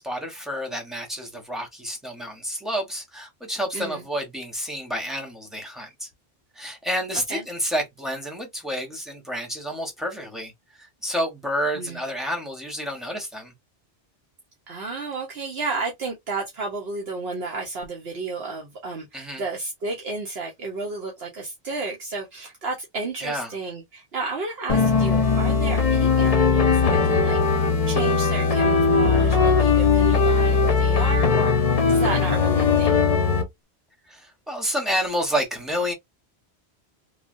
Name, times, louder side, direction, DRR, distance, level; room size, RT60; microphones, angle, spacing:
voice 1, 0.0-6.1 6.5-13.5 19.1-19.4 23.2-23.5 34.1-35.9, equal, ahead, 0.9 m, -29 dB
voice 2, 3.7-4.0 7.3-7.4 11.7-12.0 14.7-33.0, right 3 dB, 70° right, 1.1 m, -32 dB
sound 1, 24.7-33.5, left 5 dB, 40° left, 0.6 m, -19 dB
3.2 x 2.4 x 2.5 m
omnidirectional pair, 1.1 m